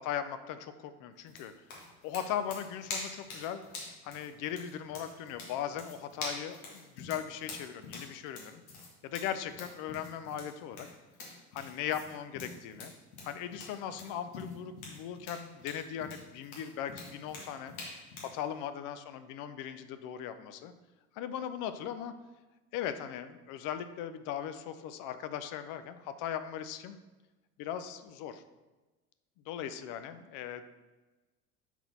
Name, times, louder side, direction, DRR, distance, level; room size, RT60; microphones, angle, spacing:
voice 1, 0.0-1.5 2.0-3.6 4.0-8.6 9.0-10.9 11.5-12.9 13.2-17.7 18.2-20.7 21.1-22.1 22.7-27.0 27.6-28.4 29.5-30.6, left 9 dB, 45° left, 10 dB, 0.6 m, -38 dB
sound 1, 1.3-18.4, left 3 dB, 70° left, 1.8 m, -45 dB
4.6 x 3.9 x 5.3 m, 1.2 s
hypercardioid pair, 75°, 44 cm